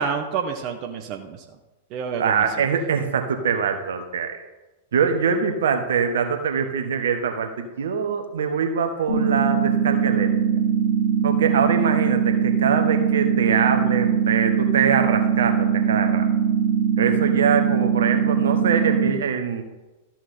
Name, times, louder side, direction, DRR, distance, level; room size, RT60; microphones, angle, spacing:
voice 1, 0.0-1.4 1.9-2.6, right 6 dB, 45° right, 4 dB, 1.0 m, -29 dB
voice 2, 2.2-4.4 4.9-10.3 11.2-16.3 17.0-19.6, right 6 dB, 70° right, 6 dB, 1.2 m, -23 dB
sound 1, 9.1-19.1, right 7 dB, 45° left, 4.1 m, -21 dB
13.5 x 6.1 x 4.4 m, 1.1 s
hypercardioid pair, 100°, 0 cm